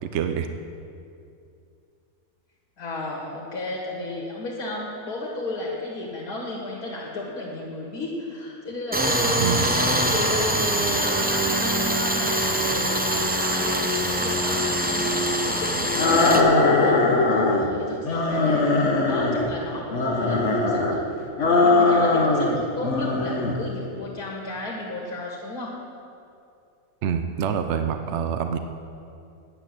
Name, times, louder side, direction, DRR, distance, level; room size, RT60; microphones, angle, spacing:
voice 1, 0.0-0.5 9.4-9.7 27.0-28.6, right 7 dB, 60° right, 7 dB, 0.8 m, -26 dB
voice 2, 2.8-15.2 15.4-25.7, left 2 dB, 80° left, -4 dB, 2.3 m, -34 dB
Tools, 8.9-16.4, right 1 dB, 10° right, 0.4 m, -23 dB
sound 1, 16.0-17.7 18.0-19.5 19.9-21.0 21.4-22.6 22.8-23.6, left 2 dB, 55° left, 1.2 m, -20 dB
10.0 x 8.3 x 7.6 m, 2.5 s
omnidirectional pair, 1.6 m